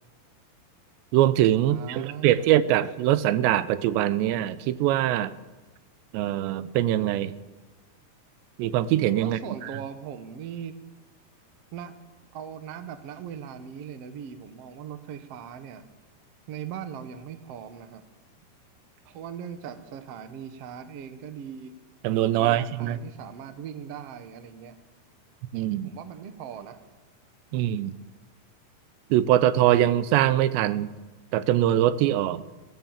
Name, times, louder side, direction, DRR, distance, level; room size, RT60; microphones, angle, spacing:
voice 1, 1.1-5.4 6.1-7.3 8.6-9.4 22.0-23.0 25.5-25.9 27.5-27.9 29.1-30.9 31.3-32.5, right 12 dB, 90° right, 15 dB, 3.0 m, -22 dB
voice 2, 1.7-2.5 9.2-10.7 11.7-11.9 12.3-15.8 16.5-18.0 19.0-21.7 22.4-24.8 25.8-26.8, right 8 dB, 70° right, 9 dB, 1.5 m, -39 dB
20.5 x 17.0 x 7.4 m, 1.2 s
omnidirectional pair, 4.9 m